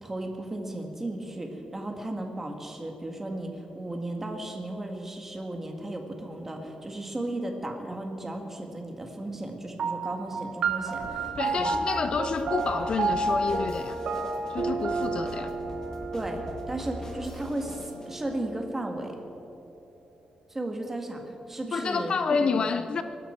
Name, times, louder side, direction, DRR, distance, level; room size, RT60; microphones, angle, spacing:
voice 1, 0.0-11.7 16.1-19.2 20.5-22.1 22.5-22.7, right 1 dB, 15° right, 2 dB, 1.7 m, -35 dB
sound 1, 9.8-18.6, right 3 dB, 65° right, 1.2 m, -31 dB
sound 2, 11.0-18.1, left 1 dB, 25° left, 2.1 m, -41 dB
voice 2, 11.4-14.0 14.5-15.5 21.7-23.0, left 5 dB, 45° left, 10 dB, 0.5 m, -28 dB
23.5 x 12.5 x 4.5 m, 2.9 s
wide cardioid pair, 170°, 2 cm